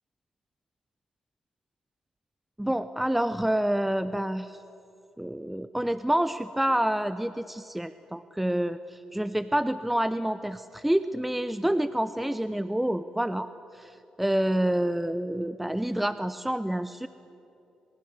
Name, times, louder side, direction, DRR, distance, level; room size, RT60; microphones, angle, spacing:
voice 1, 2.6-4.6 5.2-17.1, right 1 dB, 5° right, 12 dB, 0.8 m, -28 dB
26.5 x 22.5 x 8.2 m, 2.9 s
supercardioid pair, 65°, 2 cm